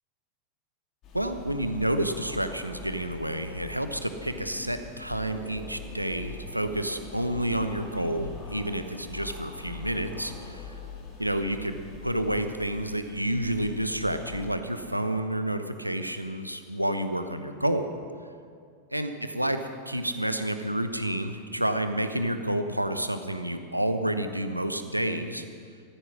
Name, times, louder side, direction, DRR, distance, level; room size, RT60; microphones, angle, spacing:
sound 1, 1.0-14.5, left 4 dB, 35° left, 3.0 m, -43 dB
voice 1, 1.1-10.7 11.2-18.0 18.9-25.4, right 1 dB, 90° right, 9 dB, 0.9 m, -29 dB
14.5 x 13.5 x 6.2 m, 2.2 s
figure-of-eight pair, 90°, 0 cm